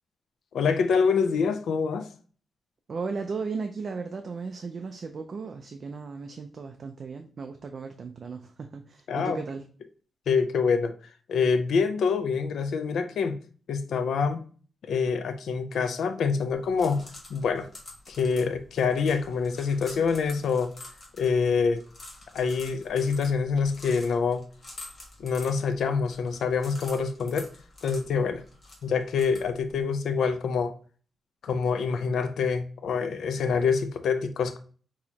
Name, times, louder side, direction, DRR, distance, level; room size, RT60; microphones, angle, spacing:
voice 1, 0.5-2.1 9.1-9.4 10.3-10.9 11.3-13.4 13.7-14.4 14.8-17.7 18.1-20.7 21.2-21.8 22.3-24.4 25.2-27.5 27.8-28.4 28.8-30.7 31.4-34.6, left 5 dB, 85° left, 9 dB, 0.5 m, -26 dB
voice 2, 2.9-9.6, right 4 dB, 40° right, 6 dB, 0.4 m, -36 dB
sound 1, 16.5-29.8, left 2 dB, 30° left, 1.3 m, -48 dB
6.1 x 2.9 x 2.8 m, 0.41 s
wide cardioid pair, 165°, 0 cm